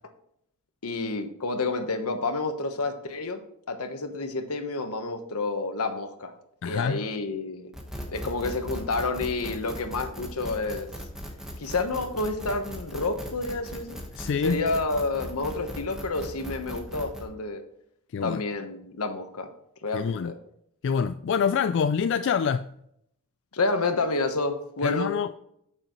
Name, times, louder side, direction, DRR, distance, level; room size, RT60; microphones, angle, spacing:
voice 1, 0.8-3.4 3.7-6.3 6.6-7.7 8.1-10.9 11.6-14.0 14.4-17.6 18.2-19.5 19.8-20.3 23.5-25.1, left 3 dB, 85° left, 1.2 m, -29 dB
voice 2, 6.6-7.1 14.2-14.6 18.1-18.4 19.9-20.3 20.8-22.7 24.8-25.3, left 6 dB, 55° left, 0.3 m, -26 dB
sound 1, 7.7-17.2, equal, 5° right, 1.3 m, -38 dB
9.1 x 7.9 x 3.1 m
head